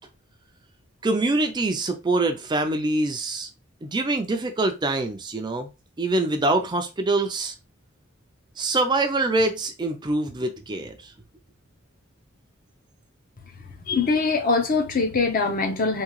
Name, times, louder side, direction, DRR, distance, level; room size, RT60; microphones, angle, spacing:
voice 1, 1.0-3.5 3.8-5.7 6.0-7.5 8.6-11.1, right 2 dB, 20° right, 0.4 m, -24 dB
voice 2, 13.9-16.0, left 4 dB, 45° left, 0.7 m, -23 dB
3.6 x 2.7 x 3.1 m
head